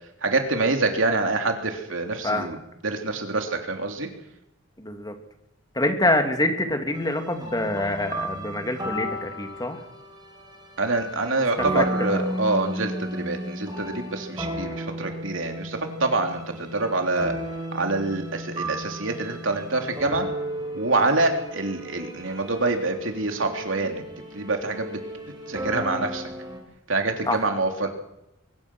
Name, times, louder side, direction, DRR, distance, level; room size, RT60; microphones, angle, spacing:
voice 1, 0.2-2.6 2.8-4.1 10.8-17.3 17.7-20.3 20.7-24.0 24.3-25.0 25.5-26.3 26.9-27.9, right 3 dB, 70° right, 4 dB, 3.3 m, -26 dB
voice 2, 2.2-2.5 4.8-5.1 5.7-9.8 11.7-12.4 27.3-27.5, left 1 dB, 20° left, 5 dB, 2.8 m, -26 dB
sound 1, 6.9-26.6, equal, 20° right, 4.9 m, -34 dB
23.0 x 20.5 x 6.3 m, 0.87 s
head